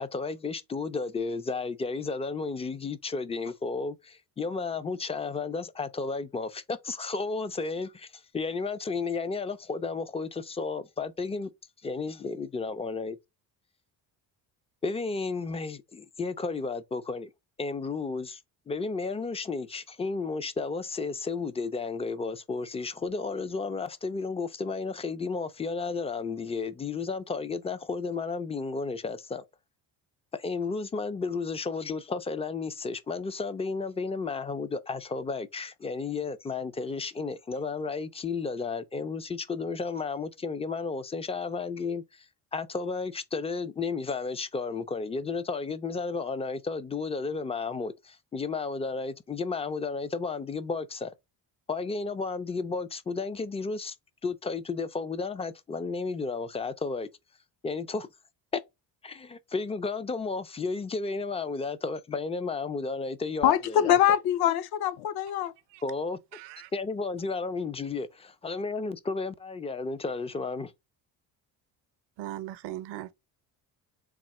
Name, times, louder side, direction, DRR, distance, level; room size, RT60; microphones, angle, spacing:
voice 1, 0.0-11.5 11.8-13.2 14.8-17.3 17.6-18.4 18.7-29.4 30.3-42.3 42.5-51.1 51.7-54.0 54.2-57.1 57.6-58.1 58.5-58.6 59.0-64.0 65.8-66.2 66.7-70.7, left 4 dB, 15° left, 0.3 m, -33 dB
voice 2, 63.4-65.5, left 10 dB, 65° left, 0.6 m, -24 dB
voice 3, 66.3-66.7 72.2-73.1, right 14 dB, 75° right, 0.6 m, -39 dB
3.7 x 2.8 x 4.1 m
cardioid pair, 120°, 41 cm